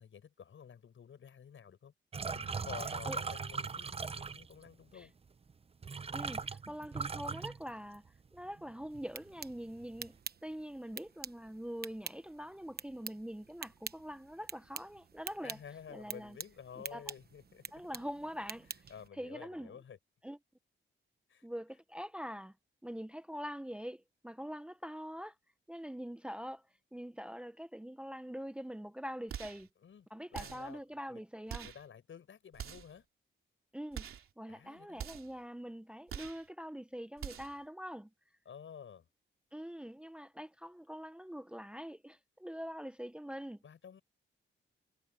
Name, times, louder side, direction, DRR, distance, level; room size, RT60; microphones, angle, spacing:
voice 1, 0.0-1.9 2.3-5.1 15.4-17.8 18.9-20.0 21.3-21.5 29.8-31.2 31.6-33.1 34.5-35.1 38.5-39.1 43.6-44.0, left 7 dB, 70° left, 6.9 m, -51 dB
sound 1, 2.1-4.7 5.5-5.6 5.8-8.3 8.6-9.0 9.4-10.1, right 5 dB, 30° right, 0.6 m, -39 dB
voice 2, 5.9-15.6 15.9-16.4 16.9-17.0 17.7-18.7 19.1-19.8 20.2-20.4 21.4-22.5 22.8-25.3 25.7-26.6 26.9-29.7 30.1-31.7 33.7-34.1 34.4-38.1 39.5-43.6, equal, 5° right, 0.9 m, -44 dB
sound 2, 8.9-19.1, right 6 dB, 50° right, 1.1 m, -48 dB
sound 3, 29.3-29.7 30.3-30.8 31.5-31.9 32.5-33.0 33.9-34.3 35.0-35.4 36.1-36.5 37.2-37.6, right 8 dB, 90° right, 2.9 m, -44 dB
wide cardioid pair, 105°, 21 cm